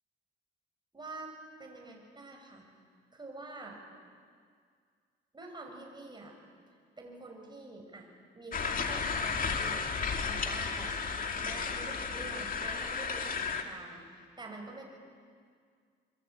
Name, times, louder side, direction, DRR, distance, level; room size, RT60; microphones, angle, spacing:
voice 1, 0.9-1.3 1.6-2.7 3.1-3.8 5.3-6.3 7.0-10.0 10.3-11.0 11.4-14.8, right 2 dB, 20° right, 2 dB, 7.0 m, -46 dB
sound 1, 8.5-13.6, left 5 dB, 45° left, 2.5 m, -33 dB
26.5 x 24.0 x 8.9 m, 2.1 s
cardioid pair, 90°, 20 cm